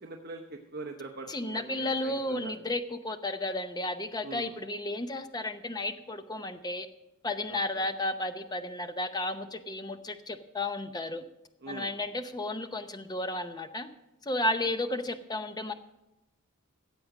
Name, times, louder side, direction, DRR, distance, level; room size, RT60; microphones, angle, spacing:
voice 1, 0.0-2.5 4.2-4.5 7.5-7.8 11.6-11.9 14.4-14.5, right 3 dB, 50° right, 3 dB, 0.9 m, -43 dB
voice 2, 1.3-6.9 7.2-11.2 11.7-13.9 14.2-15.7, left 1 dB, 20° left, 8 dB, 0.7 m, -33 dB
15.0 x 7.8 x 6.0 m, 0.94 s
head